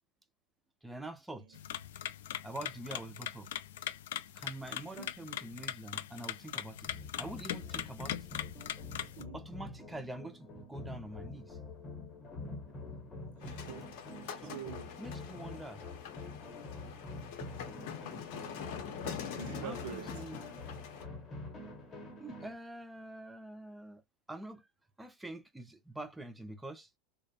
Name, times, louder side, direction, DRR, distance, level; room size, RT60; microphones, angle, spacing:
voice 1, 0.8-1.6 2.4-3.5 4.3-6.9 7.2-8.2 9.3-11.6 14.4-14.6 15.0-15.8 19.6-20.4 22.2-24.0 24.3-24.7 25.0-26.9, right 1 dB, 5° right, 0.3 m, -45 dB
sound 1, 1.5-9.2, left 11 dB, 90° left, 0.3 m, -41 dB
voice 2, 4.7-5.1 9.0-9.4 13.4-14.0 14.4-14.9 19.4-20.4, right 8 dB, 75° right, 0.4 m, -46 dB
sound 2, 6.9-22.5, left 3 dB, 20° left, 0.8 m, -46 dB
sound 3, 13.4-21.0, left 7 dB, 60° left, 0.7 m, -44 dB
2.5 x 2.0 x 2.6 m
supercardioid pair, 155°, 0 cm